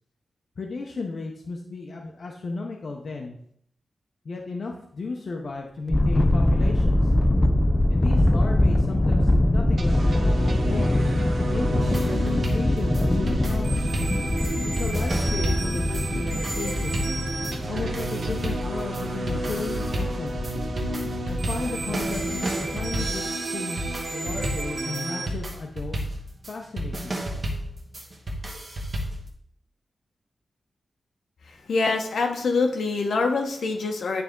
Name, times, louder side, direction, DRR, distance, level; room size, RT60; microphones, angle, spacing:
voice 1, 0.6-3.4 4.2-7.1 7.9-11.1 11.5-13.9 14.6-17.0 17.7-20.4 21.3-23.3 23.5-23.8 24.1-26.1 26.5-27.2, left 3 dB, 55° left, 1 dB, 0.7 m, -34 dB
sound 1, 5.9-23.1, left 1 dB, 15° left, 0.3 m, -24 dB
sound 2, 9.8-25.3, right 2 dB, 60° right, 0.8 m, -32 dB
sound 3, 11.8-29.3, right 1 dB, 40° right, 1.1 m, -32 dB
voice 2, 31.4-34.2, left 3 dB, 80° left, 3 dB, 1.0 m, -25 dB
9.5 x 3.4 x 3.7 m, 0.66 s
wide cardioid pair, 140°, 0 cm